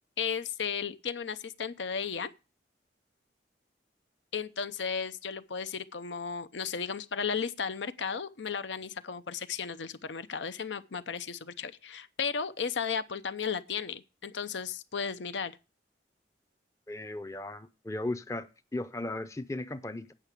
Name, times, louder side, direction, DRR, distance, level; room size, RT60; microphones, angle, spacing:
voice 1, 0.2-2.3 4.3-15.6, left 6 dB, 80° left, 0.7 m, -34 dB
voice 2, 16.9-20.1, left 2 dB, 15° left, 0.5 m, -36 dB
8.8 x 5.8 x 8.1 m
head